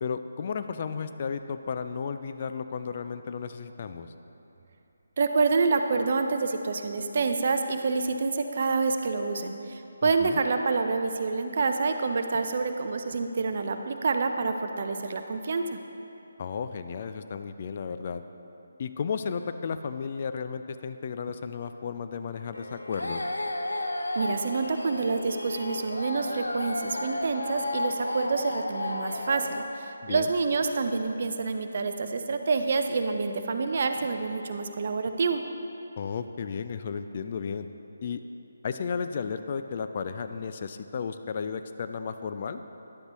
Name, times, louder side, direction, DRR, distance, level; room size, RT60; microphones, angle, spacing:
voice 1, 0.0-4.1 10.0-10.4 16.4-18.2 18.8-23.2 30.0-30.3 36.0-37.7 38.0-38.2 38.6-42.6, left 6 dB, 40° left, 9 dB, 0.3 m, -33 dB
voice 2, 5.2-15.8 24.1-35.4, right 4 dB, 45° right, 7 dB, 0.5 m, -27 dB
sound 1, 22.5-29.7, left 2 dB, 75° left, 0.6 m, -33 dB
10.5 x 7.9 x 3.0 m, 2.8 s
figure-of-eight pair, 150°, 0 cm